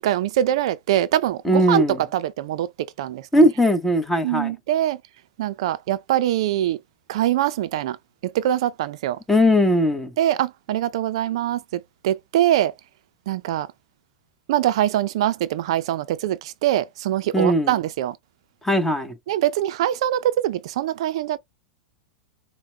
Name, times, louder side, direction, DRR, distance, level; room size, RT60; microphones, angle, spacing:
voice 1, 0.0-2.7 3.0-3.3 4.2-5.0 5.4-6.8 7.1-8.0 8.2-9.2 10.2-12.7 13.3-13.7 14.5-18.2 19.3-21.4, right 12 dB, 65° right, 0.4 m, -23 dB
voice 2, 1.4-2.0 3.3-4.5 9.3-10.1 17.3-17.8 18.6-19.1, equal, 5° left, 1.0 m, -19 dB
5.7 x 2.1 x 3.1 m
hypercardioid pair, 110°, 3 cm